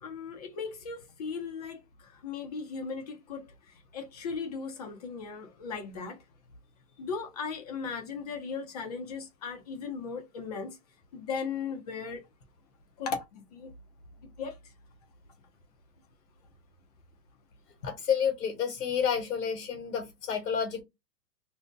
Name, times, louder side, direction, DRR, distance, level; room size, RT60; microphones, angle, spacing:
voice 1, 0.0-1.8 2.2-3.5 3.9-6.2 7.0-10.8 11.1-12.2 13.0-13.7 14.4-14.5, left 5 dB, 25° left, 0.5 m, -37 dB
voice 2, 17.8-20.8, left 7 dB, 70° left, 1.1 m, -30 dB
2.6 x 2.1 x 3.5 m
hypercardioid pair, 145°, 47 cm